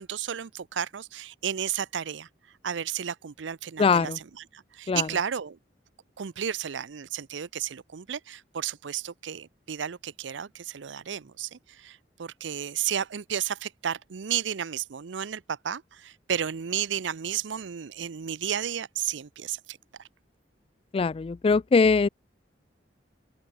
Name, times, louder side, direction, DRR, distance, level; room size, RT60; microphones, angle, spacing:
voice 1, 0.0-2.3 2.6-5.6 6.2-19.8, right 9 dB, 85° right, 0.6 m, -33 dB
voice 2, 3.8-4.2 4.9-5.1 20.9-22.1, left 4 dB, 30° left, 0.3 m, -22 dB
open air
head